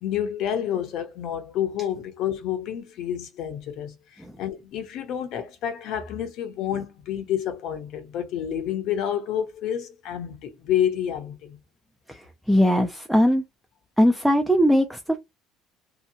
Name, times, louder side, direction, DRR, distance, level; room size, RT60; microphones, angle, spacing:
voice 1, 0.0-3.9 4.4-11.6, left 10 dB, 60° left, 0.7 m, -29 dB
voice 2, 12.1-13.4 14.0-15.2, equal, ahead, 0.4 m, -20 dB
2.8 x 2.1 x 2.6 m
cardioid pair, 130°, 0 cm